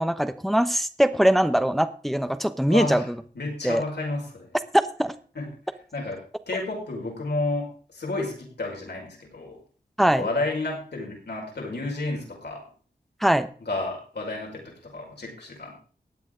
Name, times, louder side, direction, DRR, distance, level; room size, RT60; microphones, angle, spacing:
voice 1, 0.0-3.0 3.6-3.8 5.0-5.1 10.0-10.2 13.2-13.5, equal, ahead, 10 dB, 0.9 m, -22 dB
voice 2, 2.7-3.1 3.3-4.5 5.3-5.5 5.9-9.6 10.1-12.6 13.6-15.7, left 2 dB, 70° left, -1 dB, 5.1 m, -31 dB
16.0 x 9.2 x 3.8 m, 0.41 s
cardioid pair, 50°, 18 cm